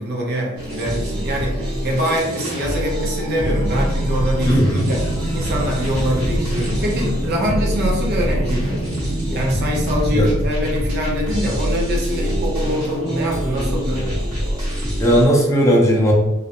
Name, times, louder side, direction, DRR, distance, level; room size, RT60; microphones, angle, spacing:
voice 1, 0.0-5.0 5.3-8.8 9.3-14.1, equal, 50° right, -2 dB, 0.7 m, -24 dB
sound 1, 0.6-15.3, equal, 80° right, 1.2 m, -24 dB
sound 2, 3.5-10.4, right 1 dB, 55° left, 0.8 m, -28 dB
voice 2, 4.5-4.9 10.1-10.3 15.0-16.1, equal, 15° left, -4 dB, 0.6 m, -16 dB
2.5 x 2.1 x 2.8 m, 0.99 s
head